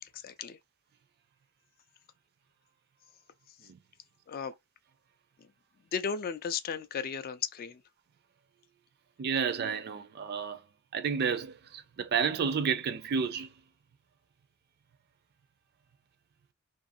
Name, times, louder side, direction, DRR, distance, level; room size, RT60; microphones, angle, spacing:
voice 1, 0.0-0.6 4.3-4.5 5.9-7.8, left 6 dB, 45° left, 0.3 m, -35 dB
voice 2, 9.2-10.6 10.9-13.5, right 6 dB, 50° right, 0.4 m, -31 dB
2.7 x 2.4 x 2.5 m
head